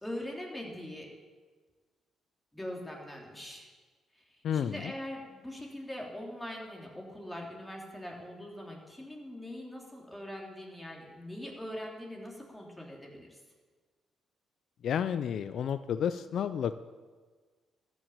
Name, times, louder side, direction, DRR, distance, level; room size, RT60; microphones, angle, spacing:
voice 1, 0.0-1.1 2.5-3.7 4.1-13.4, left 1 dB, 10° left, -1 dB, 3.0 m, -42 dB
voice 2, 4.4-4.9 14.8-16.8, left 8 dB, 65° left, 12 dB, 0.4 m, -31 dB
14.0 x 6.2 x 8.4 m, 1.4 s
cardioid pair, 90°, 0 cm